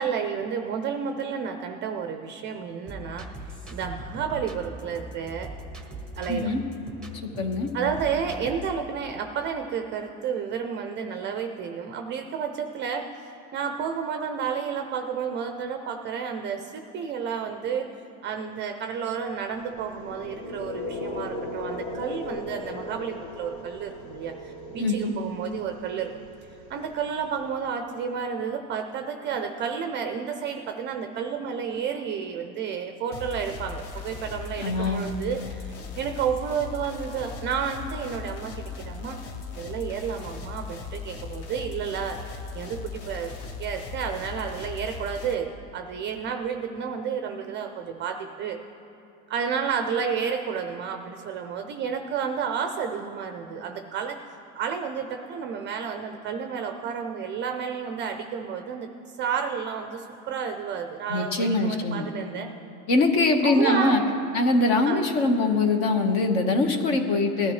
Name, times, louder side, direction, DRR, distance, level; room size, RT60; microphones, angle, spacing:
voice 1, 0.0-5.5 6.2-6.5 7.7-13.1 13.5-17.9 18.2-26.1 26.7-39.2 39.6-42.2 42.5-43.3 43.6-48.6 49.3-54.2 54.5-58.9 59.2-62.5 63.4-64.1 64.8-65.0, right 7 dB, 25° right, 5 dB, 0.4 m, -31 dB
sound 1, 2.9-8.7, right 1 dB, ahead, 0.8 m, -40 dB
voice 2, 6.3-6.6 7.4-7.7 24.8-25.1 34.6-35.0 61.1-62.1 62.9-64.0 64.3-67.5, left 2 dB, 50° left, 5 dB, 1.4 m, -23 dB
sound 2, 19.5-27.6, left 1 dB, 75° left, 2.5 m, -38 dB
sound 3, 33.1-45.4, left 5 dB, 35° left, 0.7 m, -38 dB
19.5 x 12.5 x 3.2 m, 3.0 s
supercardioid pair, 150°, 42 cm